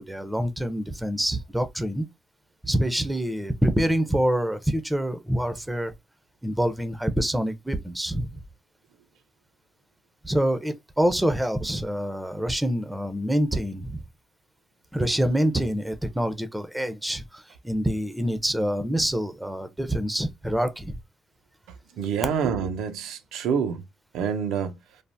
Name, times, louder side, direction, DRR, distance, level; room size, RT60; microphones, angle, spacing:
voice 1, 0.0-2.1 2.6-5.9 6.4-8.4 10.2-14.0 14.9-21.0, equal, 5° right, 0.5 m, -26 dB
voice 2, 22.0-23.9 24.1-24.8, right 7 dB, 90° right, 0.5 m, -27 dB
3.2 x 2.0 x 2.6 m
cardioid pair, 90°, 0 cm